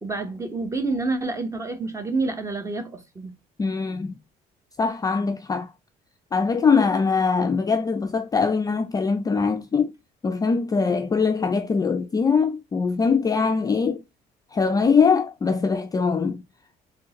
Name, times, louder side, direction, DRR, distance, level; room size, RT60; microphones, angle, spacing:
voice 1, 0.0-3.3, right 3 dB, 15° right, 0.9 m, -28 dB
voice 2, 3.6-4.1 4.8-5.7 6.3-9.9 10.2-14.0 14.5-16.4, left 5 dB, 20° left, 0.4 m, -22 dB
3.6 x 3.2 x 2.9 m
cardioid pair, 110°, 17 cm